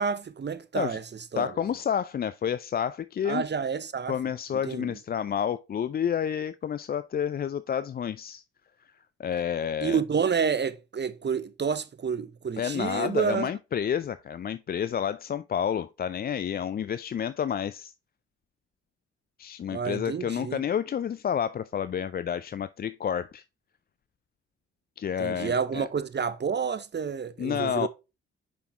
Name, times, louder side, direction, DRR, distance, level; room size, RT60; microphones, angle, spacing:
voice 1, 0.0-1.5 3.2-4.2 4.6-5.0 9.8-13.5 19.7-20.6 25.2-27.9, right 6 dB, 30° right, 0.7 m, -29 dB
voice 2, 1.4-3.4 4.1-8.4 9.2-10.0 12.6-17.9 19.4-23.4 25.0-25.9 27.4-27.9, left 8 dB, 30° left, 0.4 m, -30 dB
6.1 x 5.7 x 3.0 m
hypercardioid pair, 40°, 34 cm